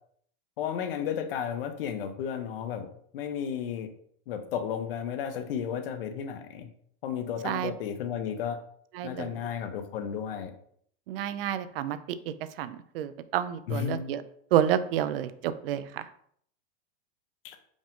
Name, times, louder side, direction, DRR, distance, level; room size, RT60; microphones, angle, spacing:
voice 1, 0.6-2.9 3.1-3.9 4.3-6.7 7.0-8.6 9.0-10.5 13.7-14.1 17.4-17.6, left 8 dB, 65° left, 8 dB, 0.7 m, -33 dB
voice 2, 8.9-9.3 11.1-14.2 14.5-16.1, right 10 dB, 70° right, 13 dB, 0.4 m, -29 dB
5.0 x 2.6 x 3.5 m, 0.64 s
supercardioid pair, 165°, 30 cm